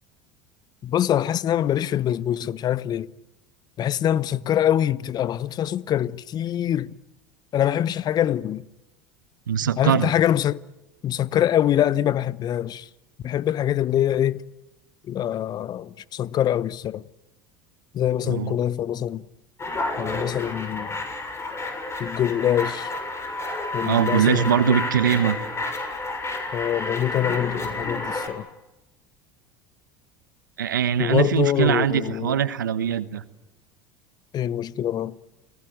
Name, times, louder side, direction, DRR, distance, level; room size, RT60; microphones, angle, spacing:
voice 1, 0.8-3.1 3.8-6.9 7.5-8.7 9.8-10.6 11.0-12.9 13.2-14.4 15.1-17.0 17.9-19.2 20.0-20.9 22.0-22.9 23.7-24.8 26.5-28.5 31.0-32.4 34.3-35.2, left 11 dB, 40° left, 0.9 m, -24 dB
voice 2, 9.5-10.1 18.2-18.5 23.9-25.4 30.6-33.2, right 9 dB, 85° right, 1.2 m, -22 dB
sound 1, 19.6-28.3, left 2 dB, 25° left, 6.9 m, -30 dB
29.5 x 19.0 x 9.3 m
hypercardioid pair, 80°, 10 cm